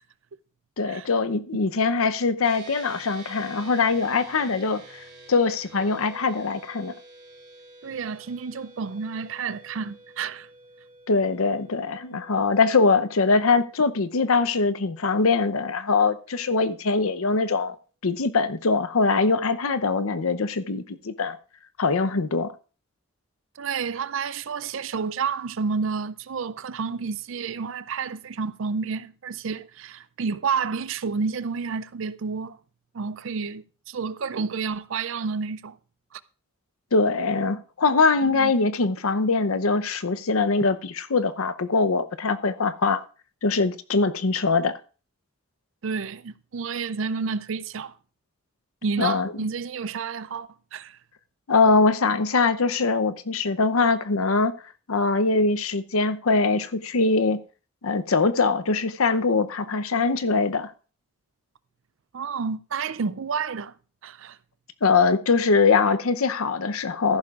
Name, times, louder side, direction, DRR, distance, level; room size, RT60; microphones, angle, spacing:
voice 1, 0.8-6.9 11.1-17.7 18.0-21.4 21.8-22.5 36.9-43.0 43.4-44.7 49.0-49.3 51.5-54.5 54.9-57.4 57.8-60.7 64.8-67.2, left 4 dB, 75° left, 0.7 m, -22 dB
sound 1, 2.4-16.0, right 2 dB, 40° right, 3.8 m, -49 dB
voice 2, 7.8-10.5 12.1-12.2 23.6-32.6 32.9-35.8 36.1-36.2 38.2-38.5 45.8-47.9 48.8-51.0 62.1-63.7 64.0-64.4, right 5 dB, 60° right, 0.4 m, -30 dB
14.0 x 11.5 x 2.4 m
head